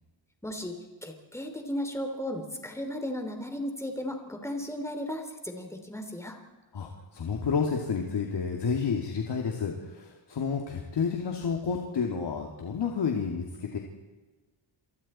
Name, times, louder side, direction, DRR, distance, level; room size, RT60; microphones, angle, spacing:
voice 1, 0.4-0.8 1.0-6.4, left 1 dB, 5° left, 4 dB, 3.2 m, -35 dB
voice 2, 6.7-13.8, left 5 dB, 60° left, 1 dB, 2.8 m, -30 dB
29.0 x 23.5 x 4.4 m, 1.2 s
wide cardioid pair, 125°, 47 cm